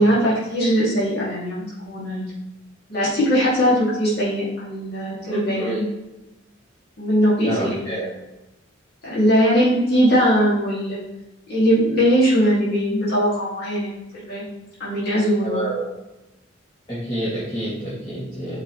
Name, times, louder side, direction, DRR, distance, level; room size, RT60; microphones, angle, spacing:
voice 1, 0.0-2.3 2.9-5.8 7.0-8.1 9.0-11.0 11.5-14.4 14.8-15.6, equal, 55° left, -8 dB, 2.7 m, -20 dB
voice 2, 7.4-8.0 15.4-15.8 16.9-18.6, right 1 dB, 30° left, -10 dB, 2.6 m, -27 dB
8.2 x 5.3 x 3.3 m, 0.98 s
head